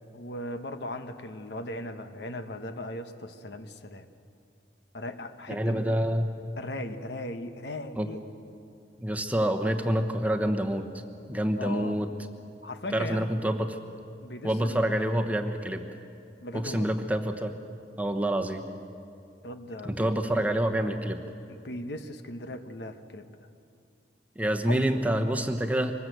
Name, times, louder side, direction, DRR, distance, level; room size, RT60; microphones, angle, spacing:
voice 1, 0.1-4.1 4.9-5.9 6.6-8.2 11.6-12.0 12.6-13.3 14.2-14.9 16.4-16.9 19.4-20.1 21.5-23.4 24.7-25.0, left 1 dB, 65° left, 8 dB, 1.2 m, -38 dB
voice 2, 5.5-6.3 8.0-8.1 9.0-10.9 11.3-12.1 12.9-13.8 14.4-15.8 16.5-17.6 18.0-18.7 19.8-21.2 24.4-25.9, right 1 dB, 10° right, 4 dB, 1.0 m, -27 dB
24.5 x 20.0 x 8.0 m, 2.5 s
head